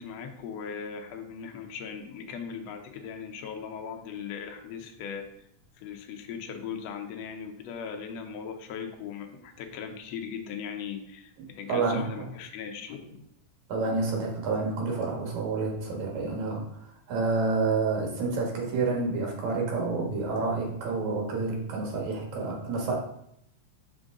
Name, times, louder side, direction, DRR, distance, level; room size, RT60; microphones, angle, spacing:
voice 1, 0.0-5.3 5.7-13.2, left 7 dB, 70° left, 4 dB, 1.7 m, -39 dB
voice 2, 11.4-12.3 13.7-16.7 17.1-23.0, right 3 dB, 70° right, 0 dB, 2.7 m, -29 dB
5.6 x 5.1 x 3.7 m, 0.73 s
omnidirectional pair, 3.5 m